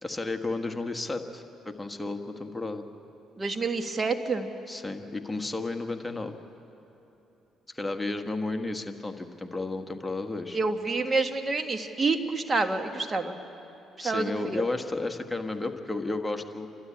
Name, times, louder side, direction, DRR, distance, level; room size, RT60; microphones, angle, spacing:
voice 1, 0.0-2.8 4.7-6.3 7.7-10.6 14.0-16.7, left 2 dB, 15° left, 6 dB, 1.6 m, -33 dB
voice 2, 3.4-4.5 10.5-13.4 14.0-14.6, right 3 dB, 35° right, 7 dB, 1.8 m, -28 dB
29.0 x 12.5 x 8.6 m, 3.0 s
supercardioid pair, 65°, 0 cm